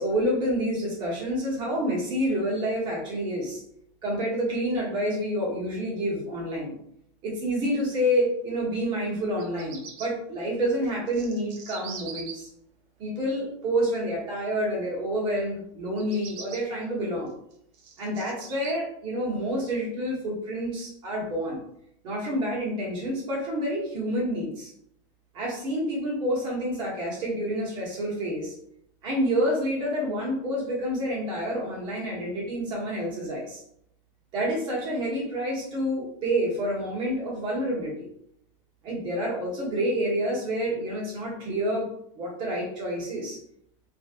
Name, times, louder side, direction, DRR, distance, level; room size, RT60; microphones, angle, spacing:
voice 1, 0.0-3.6 4.0-6.7 7.2-12.5 13.0-17.3 18.0-21.6 22.0-24.7 25.3-28.5 29.0-33.6 34.3-38.0 38.8-41.9 42.1-43.4, equal, 30° right, -4 dB, 1.1 m, -28 dB
Bird vocalization bird call bird song, 9.2-10.1 10.8-12.3 15.8-16.6 17.3-18.7, right 6 dB, 45° right, 0.7 m, -42 dB
3.0 x 2.5 x 2.8 m, 0.72 s
supercardioid pair, 175°, 15 cm